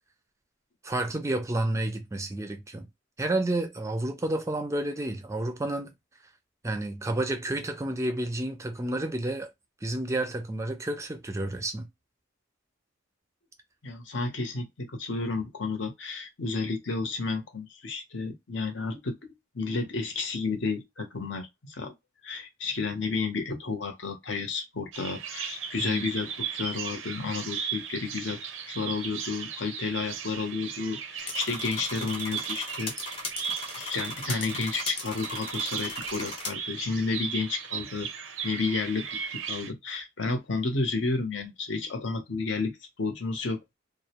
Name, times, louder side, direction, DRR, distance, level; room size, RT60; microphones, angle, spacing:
voice 1, 0.8-2.9 3.2-5.9 6.6-9.5 9.8-11.9 25.8-26.1, right 1 dB, 15° right, 0.4 m, -30 dB
voice 2, 13.8-19.2 19.5-21.9 22.2-28.4 28.7-32.9 33.4-38.1 38.4-42.7 43.0-43.6, left 4 dB, 70° left, 0.8 m, -31 dB
Bird vocalization bird call bird song, 24.9-39.7, right 7 dB, 80° right, 0.5 m, -37 dB
sound 1, 31.2-36.5, left 2 dB, 30° left, 0.6 m, -38 dB
2.5 x 2.0 x 2.9 m
head